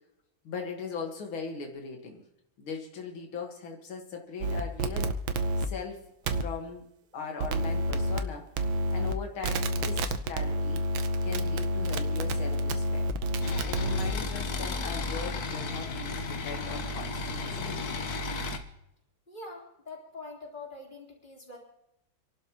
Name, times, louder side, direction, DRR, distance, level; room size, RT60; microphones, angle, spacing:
voice 1, 0.4-2.2 2.6-5.1 5.6-6.0 6.4-6.9 7.1-8.5 8.7-10.8 11.2-13.1 13.6-18.0, left 5 dB, 85° left, 3 dB, 2.4 m, -39 dB
sound 1, 4.4-5.7 6.3-6.4 7.4-8.2 8.6-9.1 9.4-14.1, right 1 dB, 80° right, 1.7 m, -28 dB
sound 2, 13.4-18.6, left 3 dB, 55° left, 1.5 m, -34 dB
voice 2, 19.3-21.6, left 3 dB, 20° left, -3 dB, 3.8 m, -44 dB
29.0 x 12.0 x 2.9 m, 0.81 s
omnidirectional pair, 2.2 m